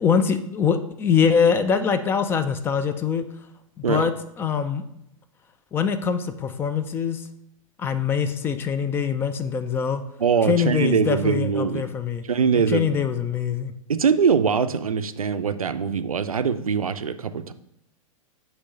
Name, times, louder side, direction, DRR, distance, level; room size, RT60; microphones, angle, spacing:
voice 1, 0.0-3.3 3.8-4.1 4.4-4.8 5.7-7.2 7.8-10.0 10.5-12.2 12.7-13.7, left 6 dB, 15° left, 10 dB, 0.3 m, -23 dB
voice 2, 10.2-11.8 12.3-12.8 13.9-17.5, right 6 dB, 80° right, 11 dB, 0.4 m, -22 dB
6.4 x 3.0 x 5.2 m, 0.77 s
figure-of-eight pair, 100°, 18 cm